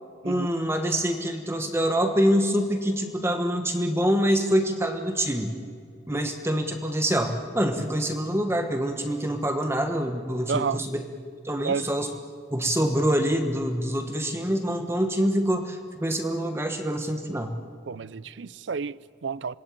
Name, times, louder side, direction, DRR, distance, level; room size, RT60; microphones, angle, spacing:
voice 1, 0.2-5.5 6.1-11.0 11.4-12.1 12.5-17.5, equal, 15° right, 1.3 m, -25 dB
voice 2, 10.5-10.9 11.6-11.9 17.9-19.6, right 5 dB, 75° right, 0.5 m, -31 dB
26.5 x 20.0 x 8.7 m
head